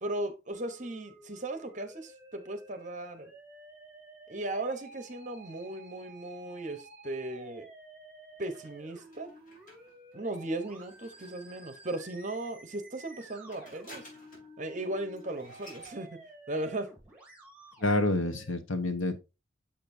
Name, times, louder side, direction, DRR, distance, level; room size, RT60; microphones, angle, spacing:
voice 1, 0.0-3.3 4.3-7.7 8.4-9.3 10.1-14.1 14.6-16.2 16.5-16.9, right 1 dB, 40° right, 0.9 m, -37 dB
Musical instrument, 0.5-18.5, right 2 dB, 5° right, 3.0 m, -52 dB
sound 1, 8.4-12.1 13.0-14.6 14.9-15.0 15.2-16.0, equal, 45° left, 4.2 m, -54 dB
voice 2, 17.8-19.2, left 2 dB, 80° left, 1.1 m, -28 dB
7.4 x 6.7 x 2.7 m
head